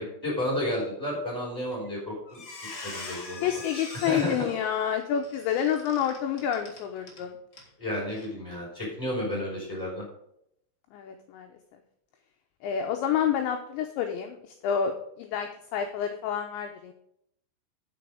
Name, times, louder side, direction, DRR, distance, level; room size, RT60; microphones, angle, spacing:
voice 1, 0.0-2.4 2.8-3.5 4.0-4.3 7.8-10.0, left 1 dB, 5° right, -4 dB, 3.9 m, -31 dB
Squeak, 1.7-2.0 2.3-7.2 7.5-7.7 8.1-8.3, left 2 dB, 45° left, 1.5 m, -43 dB
voice 2, 3.4-7.4 10.9-11.5 12.6-16.9, left 8 dB, 80° left, 4 dB, 2.7 m, -29 dB
10.0 x 6.7 x 4.9 m, 0.73 s
omnidirectional pair, 5.9 m